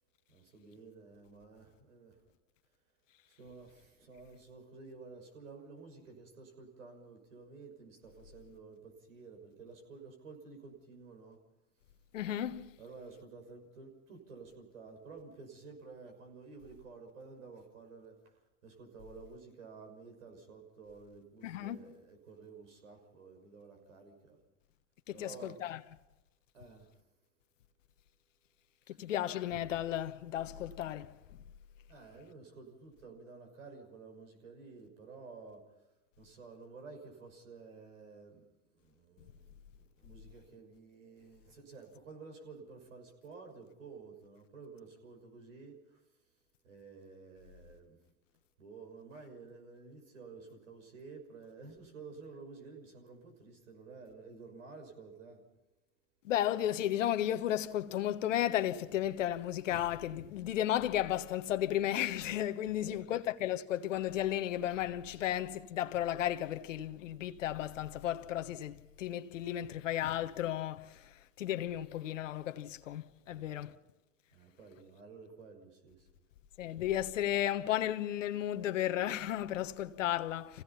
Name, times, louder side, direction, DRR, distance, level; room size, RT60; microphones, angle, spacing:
voice 1, 0.3-2.2 3.3-11.4 12.8-24.4 25.1-25.6 26.5-26.9 28.9-29.0 31.9-35.6 36.2-46.0 46.6-48.0 48.6-55.4 62.7-63.1 73.2-73.6 74.3-76.1, right 4 dB, 90° right, 6.1 m, -52 dB
voice 2, 12.1-12.7 21.4-21.8 25.1-25.8 28.9-31.2 56.2-73.7 76.6-80.6, left 12 dB, 85° left, 1.2 m, -34 dB
28.0 x 17.0 x 5.7 m
hypercardioid pair, 90°, 37 cm